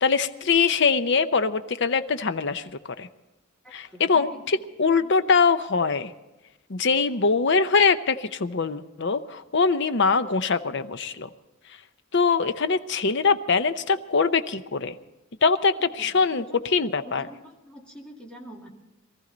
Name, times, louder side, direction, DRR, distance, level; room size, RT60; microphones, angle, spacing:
voice 1, 0.0-2.7 3.0-3.1 3.7-6.1 6.7-11.3 12.1-15.0 15.4-17.3, left 5 dB, 55° left, 11 dB, 0.7 m, -23 dB
voice 2, 3.6-4.5 15.9-16.6 17.0-18.7, equal, 5° left, -1 dB, 2.1 m, -45 dB
22.5 x 14.0 x 4.0 m, 1.1 s
head